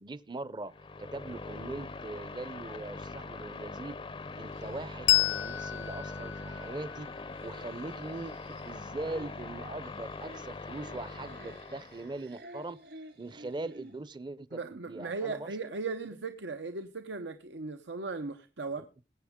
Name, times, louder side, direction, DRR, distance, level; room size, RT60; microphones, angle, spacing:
voice 1, 0.0-4.0 4.4-7.1 7.4-12.8 13.2-15.6, right 2 dB, 25° right, 0.6 m, -41 dB
sound 1, 0.7-12.2, left 3 dB, 30° left, 0.5 m, -42 dB
sound 2, 4.1-14.1, right 1 dB, 70° right, 3.4 m, -54 dB
Bell, 5.1-8.2, left 15 dB, 75° left, 0.6 m, -31 dB
voice 2, 14.5-18.9, right 3 dB, 90° right, 0.9 m, -37 dB
21.0 x 8.2 x 3.6 m
head